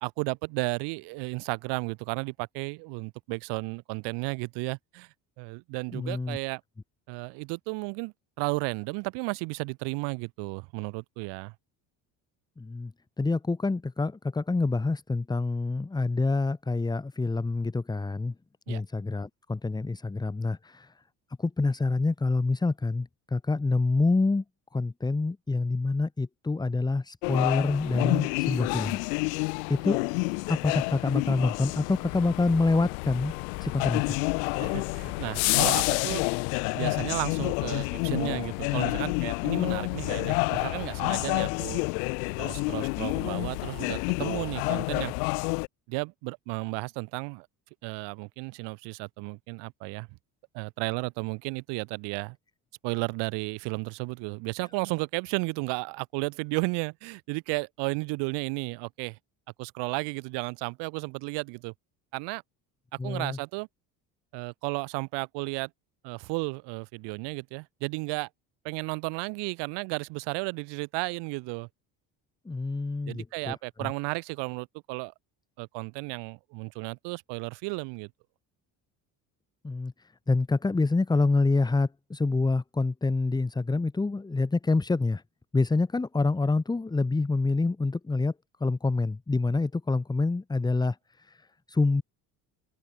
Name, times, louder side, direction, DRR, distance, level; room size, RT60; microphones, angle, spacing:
voice 1, 0.0-5.1 5.4-6.6 7.1-11.5 18.7-18.8 34.6-36.3 36.7-41.8 42.4-45.1 45.9-47.5 47.8-50.1 50.5-52.4 52.8-59.2 59.6-61.7 62.1-62.4 63.0-63.7 64.3-65.7 66.0-68.3 68.6-71.7 73.1-75.1 75.6-78.1, right 29 dB, 80° right, 1.5 m, -33 dB
voice 2, 5.9-6.4 12.6-12.9 13.2-18.3 18.7-20.9 21.4-24.4 24.7-29.0 29.7-30.0 30.5-33.3 33.6-34.2 63.0-63.4 72.5-73.9 79.6-85.2 85.5-88.3 88.6-92.0, left 3 dB, 10° left, 0.7 m, -27 dB
sound 1, 27.2-45.7, left 38 dB, 85° left, 0.9 m, -29 dB
supercardioid pair, 80°, 42 cm